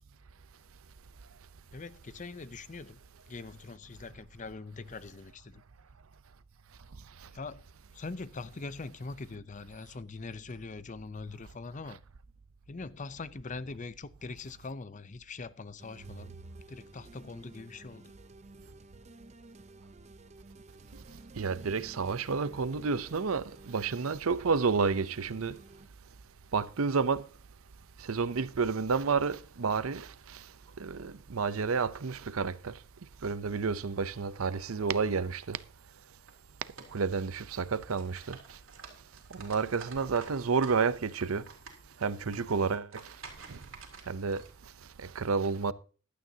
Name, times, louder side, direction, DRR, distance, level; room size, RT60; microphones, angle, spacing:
voice 1, 1.7-3.0 3.3-5.6 7.3-7.6 7.9-12.0 12.7-16.4 16.7-18.1, left 3 dB, 35° left, 0.6 m, -42 dB
sound 1, 15.8-25.9, right 2 dB, 35° right, 0.7 m, -54 dB
voice 2, 21.4-25.6 26.5-27.2 28.0-30.4 30.8-32.7 33.2-35.6 36.9-38.4 39.3-41.4 42.0-43.0 43.5-43.6 44.1-44.4 45.0-45.7, right 5 dB, 90° right, 0.6 m, -30 dB
sound 2, 36.0-36.3 36.8-37.5 37.8-40.8 41.1-44.5, right 5 dB, 70° right, 3.2 m, -50 dB
15.5 x 11.5 x 2.8 m
head